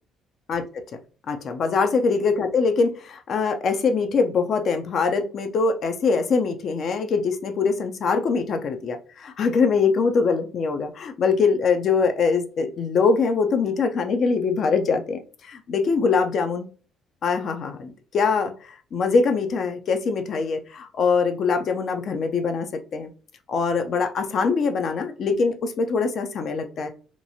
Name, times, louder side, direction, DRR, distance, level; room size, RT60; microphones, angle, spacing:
voice 1, 0.5-0.8 1.3-16.7 17.2-22.7 22.9-23.1 23.5-26.9, left 4 dB, 55° left, 7 dB, 0.4 m, -23 dB
2.9 x 2.3 x 2.6 m, 0.39 s
hypercardioid pair, 50°, 0 cm